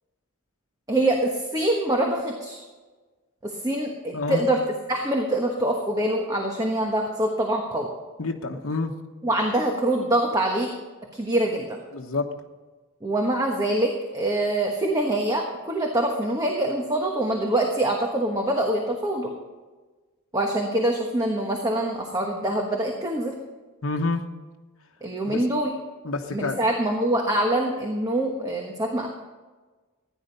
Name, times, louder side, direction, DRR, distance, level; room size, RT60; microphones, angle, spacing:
voice 1, 0.9-2.6 3.4-4.6 4.9-7.9 9.2-10.7 11.1-11.8 13.0-19.3 20.3-23.4 25.0-25.8 26.3-29.1, right 1 dB, 15° right, 1 dB, 1.2 m, -24 dB
voice 2, 4.1-4.5 8.2-8.9 11.9-12.3 23.8-24.2 25.3-25.4 26.0-26.6, left 3 dB, 70° left, 2 dB, 1.1 m, -28 dB
15.5 x 10.0 x 5.3 m, 1.3 s
head